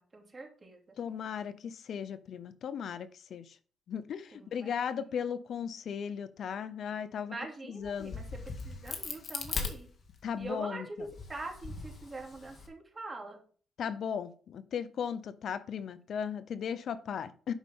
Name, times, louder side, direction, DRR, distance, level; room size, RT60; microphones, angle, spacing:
voice 1, 0.0-1.0 4.3-4.7 5.3-5.4 7.3-9.9 10.4-13.4, right 2 dB, 25° right, 2.9 m, -44 dB
voice 2, 1.0-3.6 3.9-7.4 7.7-8.2 10.2-11.1 13.8-17.5, left 7 dB, 65° left, 0.6 m, -36 dB
Crack, 7.8-10.5 11.0-12.7, left 4 dB, 45° left, 1.9 m, -39 dB
12.0 x 5.4 x 3.6 m
cardioid pair, 90°, 0 cm